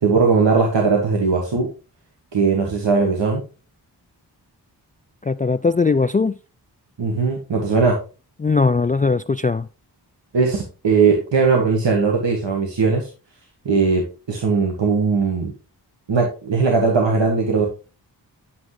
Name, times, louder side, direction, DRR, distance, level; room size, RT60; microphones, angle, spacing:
voice 1, 0.0-1.7 2.3-3.4 7.0-8.0 10.3-13.1 13.7-14.0 14.3-15.5 16.1-17.7, right 4 dB, 80° right, 1.7 m, -19 dB
voice 2, 5.2-6.3 8.4-9.7, left 4 dB, 20° left, 0.3 m, -19 dB
9.4 x 6.0 x 3.2 m
cardioid pair, 45°, 43 cm